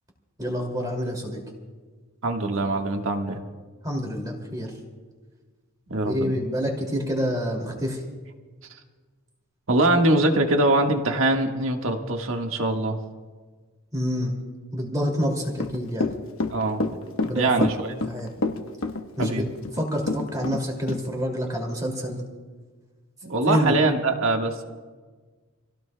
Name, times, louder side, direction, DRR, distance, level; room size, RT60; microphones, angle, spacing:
voice 1, 0.4-1.4 3.8-4.7 6.0-8.0 13.9-14.3 14.7-16.1 17.2-17.5 17.8-18.3 19.2-19.4 19.7-22.2 23.5-23.8, equal, 15° right, 0 dB, 2.4 m, -27 dB
voice 2, 2.2-3.4 5.9-6.3 9.7-13.0 16.5-16.8 17.3-17.9 19.2-19.4 23.2-24.6, right 2 dB, 70° right, 3 dB, 1.5 m, -23 dB
Run / Walk footsteps, 15.5-20.6 20.9-21.0, left 2 dB, 70° left, 1.1 m, -27 dB
28.5 x 16.5 x 2.2 m, 1.4 s
head